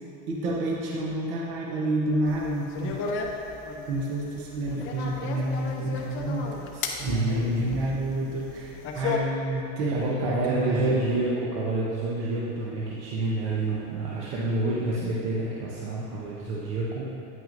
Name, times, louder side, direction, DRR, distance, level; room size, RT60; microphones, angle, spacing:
voice 1, 0.3-3.0 3.9-6.5 7.0-11.0, right 1 dB, 45° right, -2 dB, 0.7 m, -29 dB
sound 1, 2.3-9.2, left 5 dB, 40° left, 0.5 m, -34 dB
voice 2, 6.7-7.7 9.9-17.1, right 2 dB, 80° right, -5 dB, 0.9 m, -28 dB
9.0 x 6.0 x 2.5 m, 2.8 s
cardioid pair, 180°, 34 cm